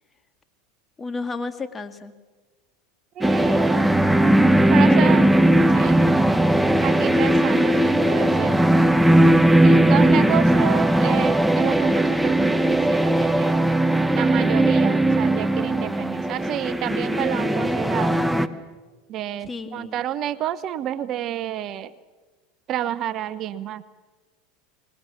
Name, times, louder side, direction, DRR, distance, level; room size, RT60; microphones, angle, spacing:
voice 1, 1.0-2.1 4.9-5.5 19.4-20.0, left 4 dB, 20° left, 9 dB, 2.0 m, -33 dB
sound 1, 3.2-18.5, right 1 dB, 5° right, 1.2 m, -18 dB
voice 2, 3.2-3.9 4.7-5.3 5.7-6.2 6.8-8.6 9.6-13.6 14.1-18.3 19.1-21.9 22.7-23.8, right 11 dB, 45° right, 16 dB, 0.9 m, -29 dB
25.5 x 20.5 x 7.2 m, 1.3 s
hypercardioid pair, 90°, 0 cm